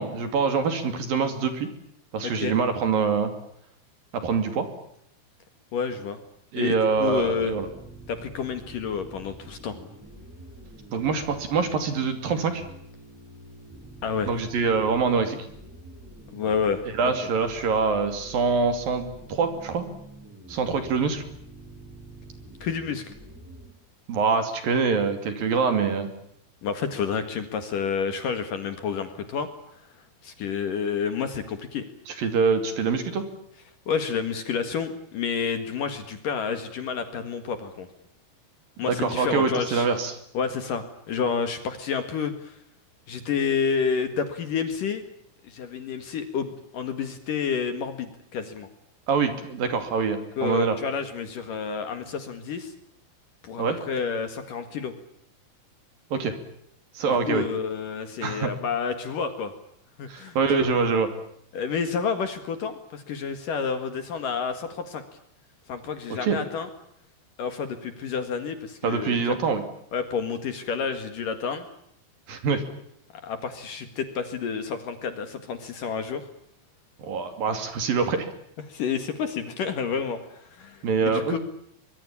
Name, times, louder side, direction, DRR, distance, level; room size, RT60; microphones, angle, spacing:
voice 1, 0.0-1.7 2.1-3.3 4.1-4.7 6.5-7.7 10.9-12.6 14.3-15.5 17.0-19.8 20.5-21.2 24.1-26.1 32.1-33.2 38.9-40.2 49.1-50.8 53.6-53.8 56.1-56.3 57.0-57.5 58.2-58.5 60.1-61.1 66.1-66.4 68.8-69.6 72.3-72.6 77.0-78.3 80.8-81.4, right 5 dB, 55° right, 8 dB, 4.1 m, -25 dB
voice 2, 2.2-2.6 5.7-6.2 6.6-7.5 8.1-9.8 14.0-14.3 16.3-16.8 22.6-23.1 26.6-29.5 30.2-31.8 33.9-37.9 38.8-39.9 40.3-42.6 43.1-45.1 45.4-48.7 50.4-52.7 53.4-54.9 57.1-59.5 60.0-60.4 61.5-65.0 65.7-66.7 67.4-69.4 69.9-71.7 73.2-76.2 78.7-81.4, left 6 dB, 55° left, 9 dB, 3.0 m, -29 dB
sound 1, 6.9-23.7, right 1 dB, 5° right, 5.6 m, -46 dB
24.5 x 22.5 x 8.5 m, 0.71 s
omnidirectional pair, 5.2 m